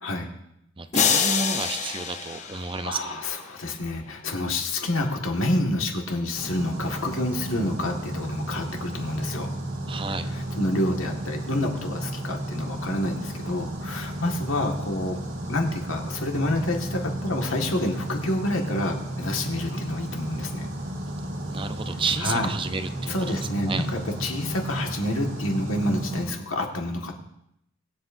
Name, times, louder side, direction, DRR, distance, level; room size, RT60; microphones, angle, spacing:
voice 1, 0.0-0.3 2.5-9.5 10.3-15.2 15.5-20.7 22.2-22.5 23.1-27.1, left 1 dB, 80° left, 2 dB, 1.8 m, -28 dB
voice 2, 0.8-3.2 9.9-10.3 21.5-23.9, right 4 dB, 25° right, 10 dB, 0.6 m, -31 dB
sound 1, 0.9-3.3, left 6 dB, 35° left, 0.8 m, -26 dB
sound 2, 6.4-26.3, right 1 dB, 60° right, 2.2 m, -33 dB
23.0 x 7.7 x 2.7 m, 0.79 s
head